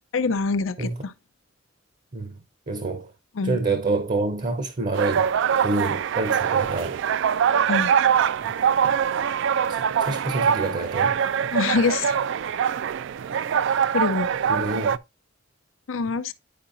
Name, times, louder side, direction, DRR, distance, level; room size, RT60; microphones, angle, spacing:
voice 1, 0.1-1.1 3.4-3.6 7.7-7.9 11.5-12.2 13.9-14.3 15.9-16.4, left 4 dB, 85° left, 0.6 m, -25 dB
voice 2, 2.7-3.1 3.4-5.3 5.6-7.0 8.4-8.5 9.7-11.2 14.5-15.0, right 3 dB, 40° right, 0.7 m, -27 dB
sound 1, 4.9-15.0, right 8 dB, 65° right, 0.3 m, -23 dB
10.0 x 4.8 x 2.6 m
head